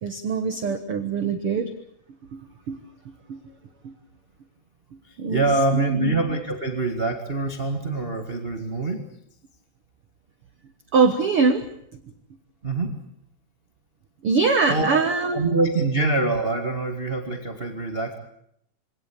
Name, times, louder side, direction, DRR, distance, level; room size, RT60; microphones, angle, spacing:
voice 1, 0.0-1.7 2.3-2.4 2.7-2.8 3.3-3.4 3.8-3.9 5.2-5.5 5.7-6.1 10.9-11.7 14.2-15.5, right 4 dB, 80° right, 9 dB, 1.2 m, -23 dB
voice 2, 5.0-9.0 12.6-12.9 14.7-15.0 15.3-18.2, right 2 dB, 35° right, 5 dB, 0.9 m, -25 dB
26.0 x 18.0 x 8.4 m, 0.72 s
omnidirectional pair, 4.6 m